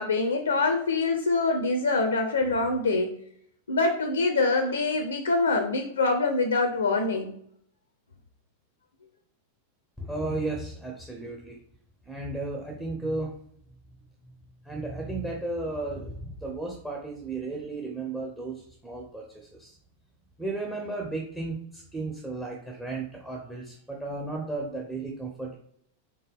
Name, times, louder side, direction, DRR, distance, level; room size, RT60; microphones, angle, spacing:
voice 1, 0.0-3.1 3.7-7.3, left 3 dB, 70° left, 6 dB, 0.5 m, -25 dB
voice 2, 10.0-11.5 12.1-13.3 14.7-19.8 20.4-25.6, right 2 dB, 5° right, 1 dB, 0.7 m, -34 dB
4.4 x 3.4 x 3.4 m, 0.68 s
figure-of-eight pair, 90°, 0 cm